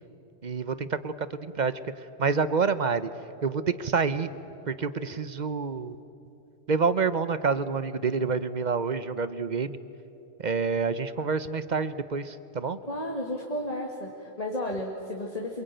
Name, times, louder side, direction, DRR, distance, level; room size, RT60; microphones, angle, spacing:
voice 1, 0.4-3.1 3.4-4.3 4.7-6.0 6.7-9.8 10.4-12.8, right 5 dB, 45° right, 13 dB, 0.9 m, -28 dB
voice 2, 12.8-15.6, left 1 dB, 35° left, 0 dB, 2.1 m, -33 dB
26.5 x 23.0 x 9.1 m, 2.9 s
omnidirectional pair, 1.1 m